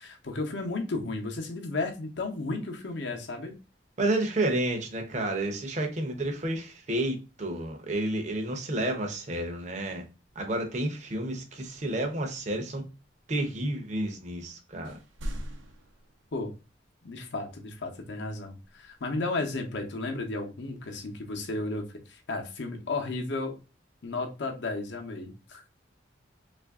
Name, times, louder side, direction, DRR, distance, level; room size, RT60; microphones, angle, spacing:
voice 1, 0.0-3.5 16.3-16.5 17.0-23.6 24.0-25.6, left 3 dB, 65° left, 0.7 m, -33 dB
voice 2, 4.0-10.0 10.4-12.8 13.3-15.0, right 1 dB, 35° right, 0.6 m, -30 dB
sound 1, 13.2-14.5 14.8-17.0 18.2-19.4 21.2-21.7 22.4-23.2, equal, 90° right, 0.7 m, -44 dB
3.2 x 2.5 x 3.5 m
head